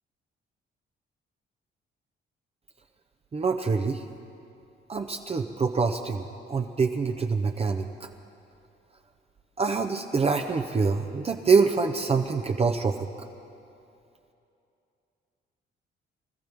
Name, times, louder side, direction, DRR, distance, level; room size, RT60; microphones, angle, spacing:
voice 1, 3.3-4.0 4.9-6.2 6.5-7.8 9.6-13.1, right 4 dB, 30° right, 4 dB, 0.7 m, -25 dB
25.0 x 13.5 x 3.6 m, 2.7 s
cardioid pair, 90°, 20 cm